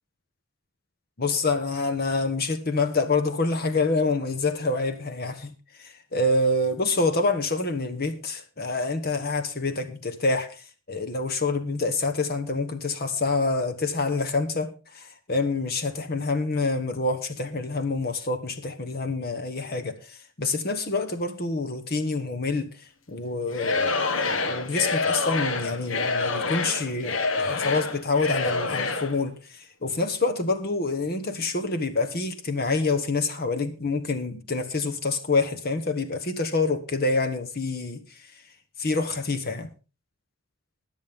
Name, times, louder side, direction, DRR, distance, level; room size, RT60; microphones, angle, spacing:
voice 1, 1.2-5.5 5.8-10.6 10.9-22.7 23.1-38.0 38.8-39.7, left 3 dB, 50° left, 1.2 m, -27 dB
Singing / Crowd, 23.5-29.2, left 3 dB, 70° left, 1.3 m, -27 dB
21.5 x 7.4 x 3.6 m
head